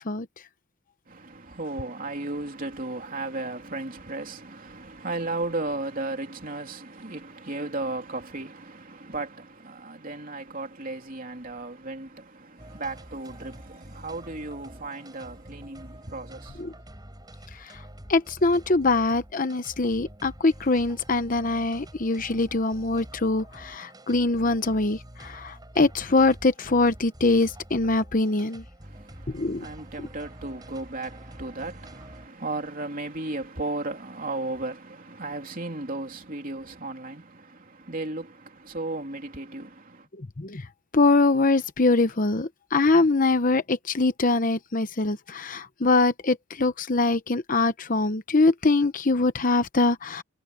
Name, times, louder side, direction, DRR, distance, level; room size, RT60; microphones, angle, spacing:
voice 1, 1.1-16.8 28.8-40.1, right 2 dB, 40° right, 3.2 m, -35 dB
sound 1, 12.6-32.3, right 1 dB, 20° right, 5.3 m, -47 dB
voice 2, 18.1-28.6 29.3-29.7 40.4-40.7 40.9-50.2, left 3 dB, 40° left, 0.9 m, -23 dB
head